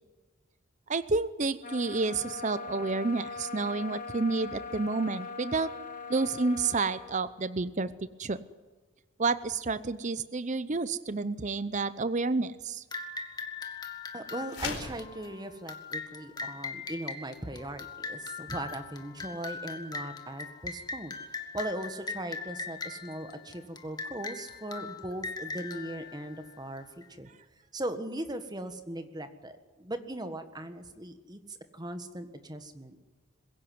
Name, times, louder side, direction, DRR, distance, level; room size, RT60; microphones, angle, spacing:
voice 1, 0.9-5.7 6.1-7.9 8.2-8.4 9.2-12.8, right 3 dB, 35° right, 14 dB, 0.6 m, -30 dB
sound 1, 1.6-7.2, left 4 dB, 40° left, 1.8 m, -41 dB
sound 2, 12.9-27.0, left 4 dB, 20° left, 1.8 m, -40 dB
voice 2, 14.1-21.1 21.5-27.3 27.7-33.0, right 1 dB, 20° right, 9 dB, 1.6 m, -39 dB
sound 3, 14.5-15.0, left 4 dB, 55° left, 4.4 m, -36 dB
21.5 x 16.5 x 9.5 m, 1.3 s
head